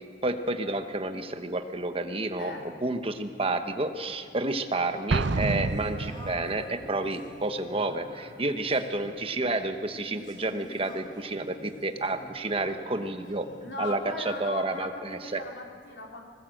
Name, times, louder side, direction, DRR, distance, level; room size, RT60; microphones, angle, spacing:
voice 1, 0.2-13.5 13.8-15.4, right 2 dB, 30° right, 7 dB, 1.2 m, -30 dB
voice 2, 2.4-2.7 13.6-16.2, left 2 dB, 75° left, 0 dB, 3.2 m, -38 dB
Explosion, 5.1-6.7, right 3 dB, 90° right, 0.7 m, -29 dB
Singing, 5.2-13.8, left 1 dB, 25° left, 3.8 m, -48 dB
20.5 x 18.5 x 8.0 m, 2.3 s
head